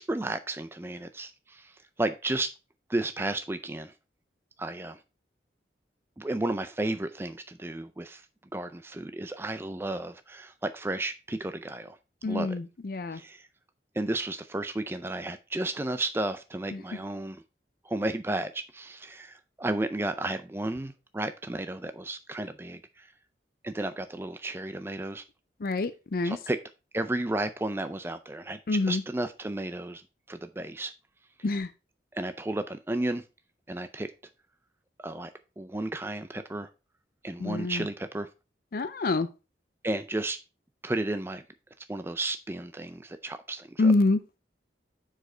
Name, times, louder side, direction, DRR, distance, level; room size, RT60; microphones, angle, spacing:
voice 1, 0.0-2.5 2.9-3.9 4.6-5.0 6.2-8.3 8.5-12.0 12.3-12.6 13.1-13.5 13.9-17.4 17.8-23.1 23.6-25.2 26.2-26.6 26.9-30.0 30.3-30.9 32.1-33.2 33.7-34.1 35.0-35.3 35.6-36.7 37.2-38.3 39.8-40.4 40.8-41.4 41.9-43.9, right 2 dB, 15° right, 0.4 m, -33 dB
voice 2, 12.2-13.2 25.6-26.4 28.7-29.0 31.4-31.7 37.4-37.8 38.7-39.3 43.8-44.2, left 3 dB, 55° left, 0.5 m, -26 dB
6.7 x 4.9 x 4.4 m
head